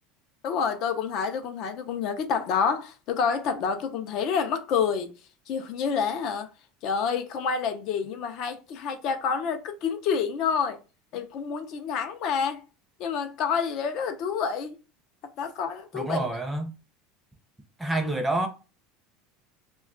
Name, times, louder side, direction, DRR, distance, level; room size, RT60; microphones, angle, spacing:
voice 1, 0.4-5.1 5.5-6.5 6.8-10.8 11.1-12.6 13.0-14.8 15.4-16.2, left 6 dB, 55° left, 0.5 m, -28 dB
voice 2, 15.9-16.7 17.8-18.5, right 2 dB, 10° right, 0.6 m, -27 dB
2.3 x 2.2 x 3.6 m
supercardioid pair, 135°, 0 cm